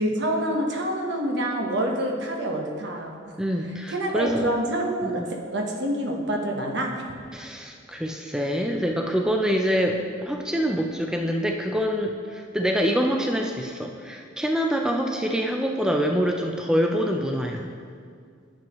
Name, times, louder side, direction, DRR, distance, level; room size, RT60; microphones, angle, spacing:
voice 1, 0.0-3.2 3.9-6.9, right 1 dB, 65° right, 1 dB, 1.0 m, -27 dB
voice 2, 3.4-4.5 5.0-5.2 7.3-17.7, equal, 5° right, 2 dB, 0.4 m, -25 dB
10.5 x 7.1 x 3.0 m, 2.2 s
head